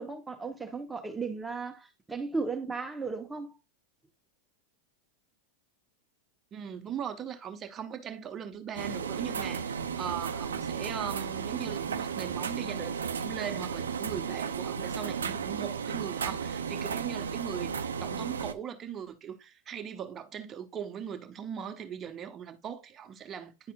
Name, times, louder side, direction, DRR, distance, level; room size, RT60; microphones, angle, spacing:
voice 1, 0.0-3.6, right 4 dB, 10° right, 1.2 m, -35 dB
voice 2, 6.5-17.7 18.0-23.7, right 8 dB, 30° right, 1.0 m, -39 dB
sound 1, 8.7-18.5, right 6 dB, 85° right, 0.5 m, -34 dB
10.5 x 4.2 x 2.3 m
hypercardioid pair, 100°, 0 cm